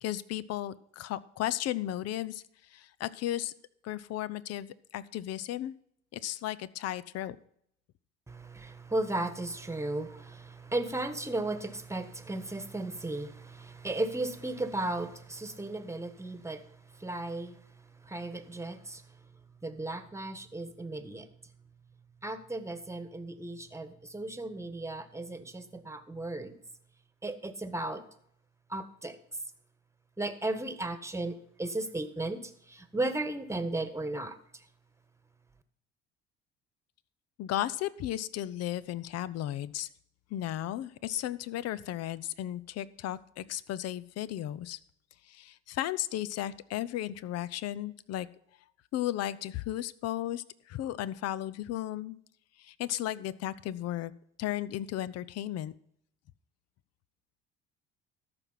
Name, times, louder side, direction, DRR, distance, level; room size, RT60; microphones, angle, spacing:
voice 1, 0.0-2.4 2.7-3.5 3.8-5.7 6.1-7.4 37.4-39.9 40.3-44.8 45.3-48.3 48.9-52.2 52.6-54.1 54.4-55.7, left 13 dB, 55° left, 17 dB, 0.7 m, -35 dB
voice 2, 8.3-16.6 17.0-17.6 18.0-19.0 19.6-21.3 22.2-26.5 27.2-28.0 28.7-29.2 30.2-34.4, right 2 dB, 10° right, 11 dB, 1.4 m, -35 dB
14.0 x 6.1 x 5.7 m, 0.69 s
hypercardioid pair, 60°, 31 cm